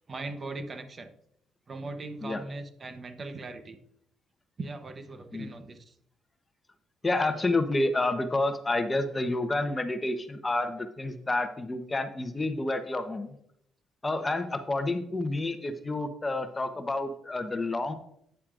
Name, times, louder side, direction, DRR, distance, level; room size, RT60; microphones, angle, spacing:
voice 1, 0.1-1.1 1.7-3.8 4.6-5.9, right 3 dB, 40° right, 8 dB, 0.8 m, -39 dB
voice 2, 7.0-13.4 14.0-17.9, left 2 dB, 25° left, 9 dB, 0.9 m, -29 dB
9.1 x 8.4 x 2.5 m, 0.73 s
cardioid pair, 90°, 0 cm